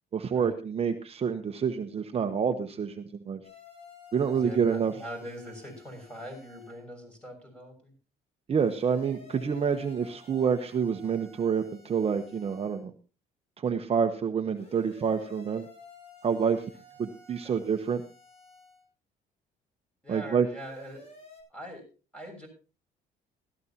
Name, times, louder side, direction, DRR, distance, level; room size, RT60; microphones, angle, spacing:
voice 1, 0.1-3.4 4.1-4.9 8.5-12.9 13.6-15.7 16.2-16.6 17.0-18.0 20.1-20.5, right 6 dB, 35° right, 6 dB, 1.1 m, -28 dB
sound 1, 3.4-6.8 8.5-12.8 14.5-18.8 20.5-21.4, left 3 dB, 35° left, 7.5 m, -53 dB
voice 2, 4.3-7.9 17.4-17.5 20.0-21.1 21.5-21.9 22.1-22.5, equal, 5° left, 4 dB, 6.5 m, -42 dB
16.0 x 14.0 x 2.9 m, 0.34 s
cardioid pair, 110°, 17 cm